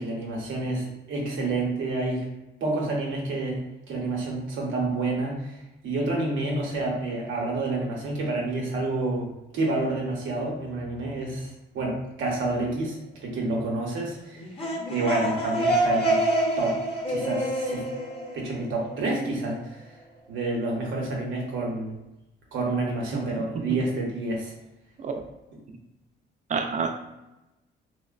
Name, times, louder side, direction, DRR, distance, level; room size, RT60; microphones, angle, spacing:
voice 1, 0.0-2.2 2.6-5.5 5.8-9.3 9.5-11.5 11.7-14.4 14.9-16.2 16.6-16.8 17.1-17.8 18.3-19.8 20.3-22.0 22.5-24.5, right 2 dB, 80° right, -2 dB, 0.8 m, -28 dB
sound 1, 14.4-19.1, right 1 dB, 25° left, 0.7 m, -27 dB
voice 2, 26.5-27.0, right 5 dB, 40° right, 4 dB, 0.4 m, -29 dB
2.8 x 2.1 x 2.4 m, 0.97 s
cardioid pair, 90°, 20 cm